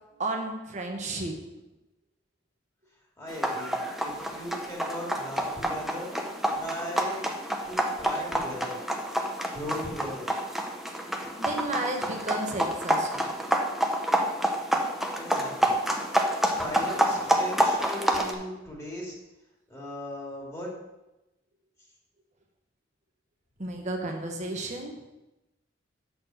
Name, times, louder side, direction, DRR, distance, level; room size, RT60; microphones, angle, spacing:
voice 1, 0.2-1.3 6.3-6.4 7.8-8.0 11.3-13.3 17.1-17.3 23.6-25.0, right 2 dB, 40° right, 2 dB, 1.2 m, -33 dB
voice 2, 3.2-6.1 6.5-7.2 7.6-8.8 9.5-10.3 15.1-15.8 16.6-19.1 19.7-20.7, left 1 dB, 15° left, -4 dB, 2.2 m, -38 dB
sound 1, 3.3-18.3, right 1 dB, ahead, 0.7 m, -28 dB
8.2 x 4.3 x 5.8 m, 0.98 s
head